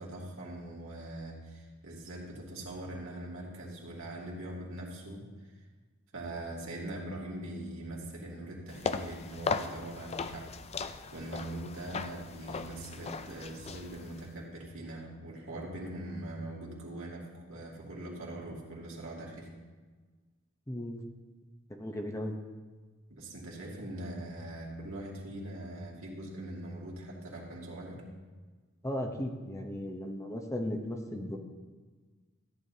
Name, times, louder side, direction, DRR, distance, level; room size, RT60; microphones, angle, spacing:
voice 1, 0.0-5.3 6.1-10.5 10.8-19.5 23.1-28.0, right 1 dB, 75° right, -4 dB, 2.5 m, -42 dB
sound 1, 8.7-14.3, left 4 dB, 30° left, 0.4 m, -38 dB
voice 2, 20.7-21.0 21.7-22.3 28.8-31.4, left 1 dB, 15° left, 2 dB, 0.8 m, -36 dB
14.0 x 9.8 x 2.8 m, 1.4 s
head